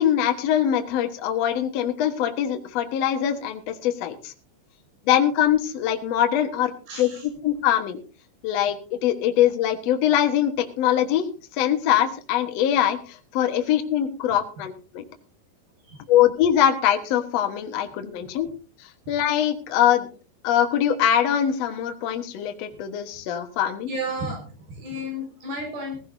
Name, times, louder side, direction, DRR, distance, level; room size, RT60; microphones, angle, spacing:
voice 1, 0.0-4.3 5.1-6.7 7.0-7.1 7.4-8.0 8.4-8.8 9.0-11.2 11.6-15.0 16.1-18.5 19.1-20.1 20.4-23.9, left 10 dB, 75° left, 6 dB, 1.5 m, -22 dB
voice 2, 6.9-7.3 15.9-16.0 23.9-24.4 24.7-26.0, equal, 55° right, 2 dB, 7.0 m, -32 dB
18.5 x 15.5 x 2.7 m, 0.35 s
omnidirectional pair, 5.2 m